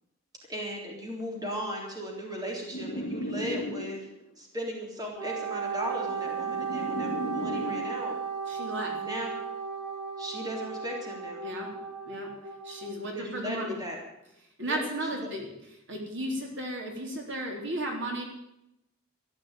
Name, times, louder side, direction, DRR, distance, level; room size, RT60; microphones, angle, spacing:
voice 1, 0.5-4.0 4.4-8.2 8.9-9.3 10.2-11.5 13.1-14.0 14.6-15.3, equal, 20° right, -1 dB, 3.7 m, -37 dB
sound 1, 2.7-4.2 5.3-8.0, equal, 50° left, 2.5 m, -36 dB
Wind instrument woodwind instrument, 5.2-12.9, right 6 dB, 80° right, 5.5 m, -35 dB
voice 2, 8.5-9.0 11.4-11.7 12.1-12.3 12.6-13.8 14.6-15.5 15.9-18.2, right 1 dB, 60° right, 0 dB, 3.7 m, -34 dB
14.5 x 10.5 x 9.1 m, 0.83 s
head